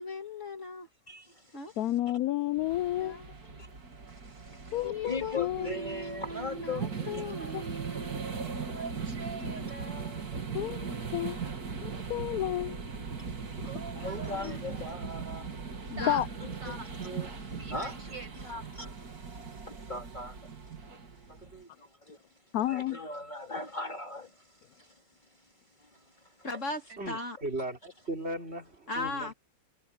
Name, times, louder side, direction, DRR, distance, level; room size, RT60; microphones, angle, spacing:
voice 1, 0.0-0.9 1.5-1.7 3.0-3.3 4.8-8.2 9.4-9.8 15.9-16.2 26.4-27.4 28.9-29.3, left 2 dB, 40° left, 2.2 m, -38 dB
voice 2, 1.8-3.2 4.7-5.7 7.5-7.6 10.5-11.4 11.8-12.8 13.6-13.7 14.4-14.6 16.1-16.3 22.5-23.0, left 13 dB, 75° left, 0.8 m, -31 dB
sound 1, 2.6-21.6, right 5 dB, 50° right, 2.7 m, -39 dB
voice 3, 5.0-7.4 7.7-7.8 14.0-15.4 16.4-17.3 17.7-18.4 18.8-18.9 19.5-20.4 21.3-22.2 22.6-24.3 24.8-24.9, left 2 dB, 25° left, 2.3 m, -39 dB
voice 4, 8.6-10.6 13.6-15.4 16.0-16.2 16.6-16.9 17.6-18.6, right 2 dB, 65° right, 6.9 m, -44 dB
voice 5, 27.0-29.3, right 1 dB, 30° right, 3.7 m, -37 dB
omnidirectional pair, 2.1 m